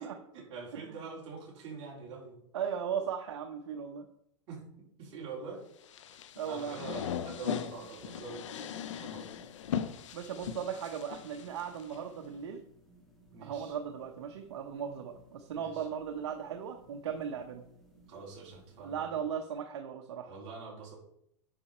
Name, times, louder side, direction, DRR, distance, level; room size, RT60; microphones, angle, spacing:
voice 1, 0.0-2.4 4.5-4.6 5.0-5.6 6.1-6.2 6.4-9.2 13.3-13.7 15.5-15.8 18.1-19.1 20.3-21.0, right 4 dB, 35° right, -5 dB, 3.8 m, -45 dB
voice 2, 2.5-4.1 6.4-6.8 10.1-12.6 13.4-17.6 18.8-20.3, right 7 dB, 65° right, 4 dB, 0.9 m, -37 dB
sound 1, 5.8-12.0, left 8 dB, 70° left, 0.8 m, -39 dB
sound 2, 7.5-19.0, right 1 dB, ahead, 1.8 m, -61 dB
10.0 x 5.4 x 4.3 m, 0.74 s
hypercardioid pair, 150°, 16 cm